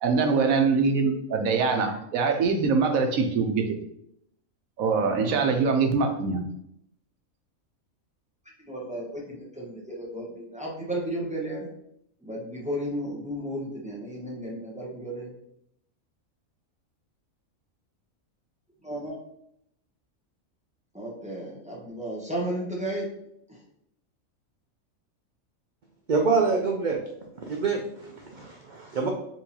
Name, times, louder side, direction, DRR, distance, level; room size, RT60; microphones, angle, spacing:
voice 1, 0.0-3.8 4.8-6.5, right 4 dB, 90° right, 4 dB, 1.2 m, -23 dB
voice 2, 8.6-11.7 12.2-15.4 18.8-19.2 20.9-23.1 23.5-23.6, right 1 dB, 5° right, -5 dB, 1.0 m, -33 dB
voice 3, 26.1-27.0 27.4-29.1, right 4 dB, 60° right, 1 dB, 0.5 m, -26 dB
4.5 x 3.6 x 2.8 m, 0.74 s
omnidirectional pair, 1.4 m